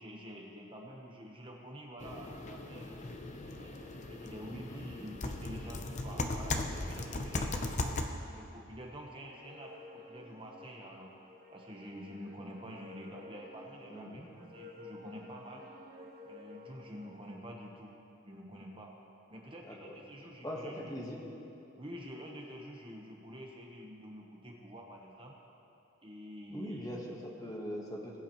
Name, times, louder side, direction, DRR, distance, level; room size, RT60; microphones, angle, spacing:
voice 1, 0.0-3.0 3.5-7.5 8.3-11.1 11.5-15.6 16.3-17.9 18.2-18.9 19.3-21.0 21.8-25.4 26.0-27.0, equal, 25° right, -1 dB, 1.0 m, -48 dB
sound 1, 2.0-8.1, left 2 dB, 35° left, 0.6 m, -38 dB
voice 2, 4.5-4.9 13.9-14.3 19.6-20.0 20.4-21.2 26.5-28.2, equal, 15° left, -1 dB, 1.2 m, -41 dB
sound 2, 9.2-17.3, left 2 dB, 45° right, 1.2 m, -53 dB
20.5 x 8.1 x 3.0 m, 3.0 s
head